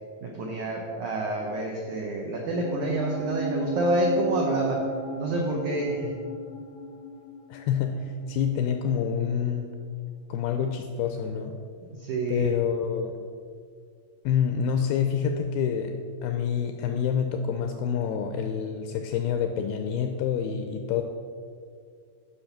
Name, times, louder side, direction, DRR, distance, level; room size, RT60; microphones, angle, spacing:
voice 1, 0.2-4.8 5.2-6.1 12.0-12.5, right 1 dB, 85° right, 0 dB, 1.7 m, -28 dB
sound 1, 2.5-9.1 9.3-9.4, right 2 dB, ahead, 0.6 m, -36 dB
voice 2, 7.5-9.7 10.3-11.6 12.3-13.1 14.3-16.0 16.2-21.0, left 7 dB, 85° left, 5 dB, 2.2 m, -27 dB
10.0 x 6.0 x 5.8 m, 2.2 s
omnidirectional pair, 4.9 m